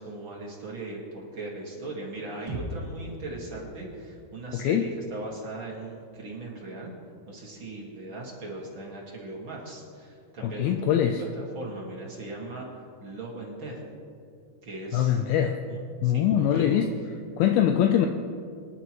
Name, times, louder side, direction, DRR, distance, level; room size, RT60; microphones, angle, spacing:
voice 1, 0.0-6.9 7.3-13.9 14.6-15.2 15.7-16.8, right 2 dB, 40° right, -3 dB, 2.0 m, -39 dB
sound 1, 2.5-6.4, equal, 20° right, 0.8 m, -41 dB
voice 2, 10.4-11.2 14.9-15.6 16.0-16.9 17.4-18.1, left 10 dB, 80° left, 5 dB, 2.5 m, -22 dB
24.0 x 11.0 x 3.1 m, 2.3 s
omnidirectional pair, 4.5 m